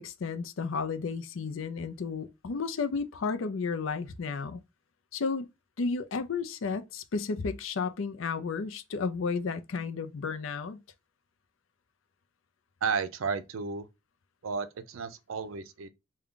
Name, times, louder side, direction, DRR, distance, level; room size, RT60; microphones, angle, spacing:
voice 1, 0.0-4.6 5.1-5.5 5.8-10.8, left 4 dB, 75° left, 0.5 m, -32 dB
voice 2, 12.8-13.9 14.4-15.9, right 5 dB, 80° right, 0.5 m, -33 dB
3.5 x 2.3 x 3.6 m
head